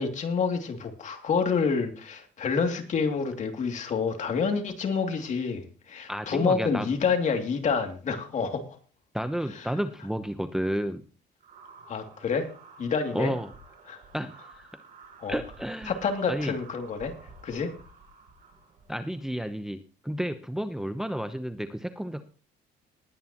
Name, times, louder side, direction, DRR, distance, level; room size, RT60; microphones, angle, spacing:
voice 1, 0.0-8.8 9.5-9.7 11.9-12.5 12.8-13.3 13.9-14.0 15.2-15.4 15.9-17.1 17.4-17.7, left 5 dB, 45° left, 4 dB, 2.6 m, -28 dB
voice 2, 6.1-6.9 9.1-11.0 13.1-13.5 14.1-14.7 15.3-15.9 16.3-16.6 18.9-22.2, equal, 5° right, 8 dB, 0.8 m, -31 dB
sound 1, 11.4-19.5, right 3 dB, 55° right, 5.8 m, -51 dB
20.0 x 9.5 x 3.0 m, 0.37 s
cardioid pair, 110°, 17 cm